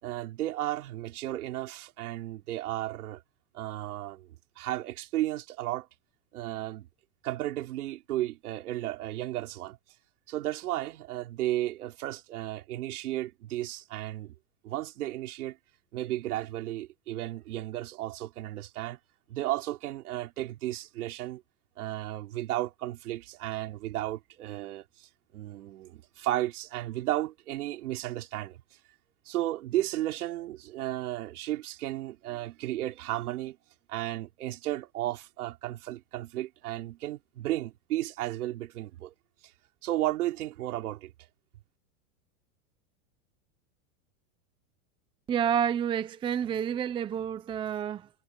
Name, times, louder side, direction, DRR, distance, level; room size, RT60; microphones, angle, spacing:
voice 1, 0.0-3.2 3.5-4.3 4.6-5.9 6.3-6.9 7.2-9.8 10.3-14.3 14.6-15.6 15.9-19.0 19.3-21.4 21.8-28.6 29.2-33.6 33.9-39.1 39.8-41.1, right 15 dB, 80° right, 5.0 m, -34 dB
voice 2, 45.3-48.1, right 9 dB, 10° right, 0.6 m, -29 dB
supercardioid pair, 155°, 44 cm